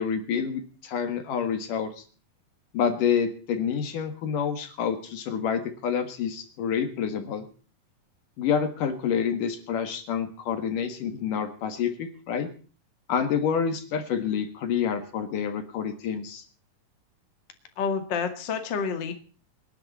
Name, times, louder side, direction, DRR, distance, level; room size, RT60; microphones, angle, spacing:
voice 1, 0.0-2.0 2.7-7.5 8.4-12.5 13.1-16.4, left 7 dB, 65° left, 8 dB, 3.1 m, -28 dB
voice 2, 17.8-19.1, left 6 dB, 40° left, 6 dB, 2.1 m, -28 dB
27.5 x 10.5 x 4.2 m, 0.39 s
omnidirectional pair, 4.2 m